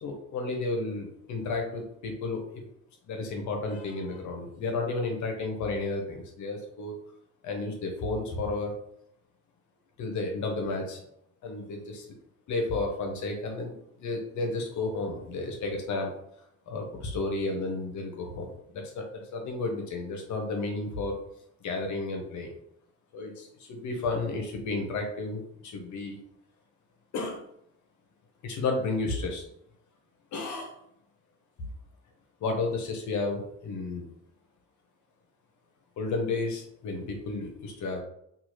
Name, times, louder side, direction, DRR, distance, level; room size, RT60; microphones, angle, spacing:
voice 1, 0.0-2.7 3.1-7.0 7.4-8.8 10.0-11.0 11.4-12.1 12.5-13.7 14.0-16.1 16.7-21.2 21.6-22.5 23.1-26.2 27.1-27.4 28.4-29.5 30.3-30.8 32.4-34.0 36.0-38.0, left 3 dB, 75° left, 3 dB, 0.8 m, -32 dB
2.7 x 2.4 x 3.1 m, 0.74 s
cardioid pair, 90°, 30 cm